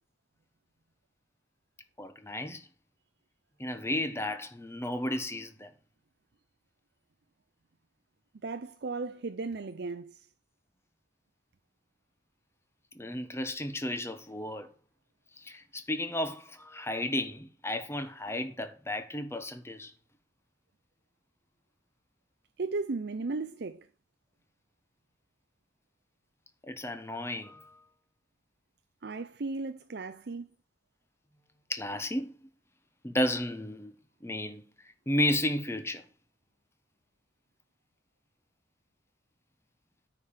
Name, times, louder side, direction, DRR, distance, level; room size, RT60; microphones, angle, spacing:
voice 1, 2.0-2.6 3.6-5.7 12.9-14.7 15.4-19.9 26.7-27.8 31.7-32.3 33.0-33.9 34.2-34.6 35.1-36.0, left 1 dB, 15° left, 1.2 m, -33 dB
voice 2, 8.4-10.2 22.6-23.9 29.0-30.5, right 3 dB, 65° right, 0.6 m, -35 dB
9.4 x 5.2 x 7.3 m
head